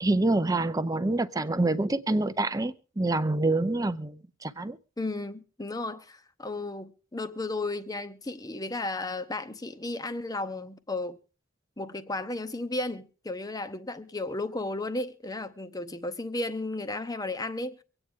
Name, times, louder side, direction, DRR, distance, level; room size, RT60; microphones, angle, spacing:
voice 1, 0.0-4.8, right 2 dB, 15° right, 0.6 m, -26 dB
voice 2, 5.0-11.2 11.8-17.8, left 2 dB, 20° left, 0.8 m, -34 dB
24.0 x 8.9 x 3.7 m
head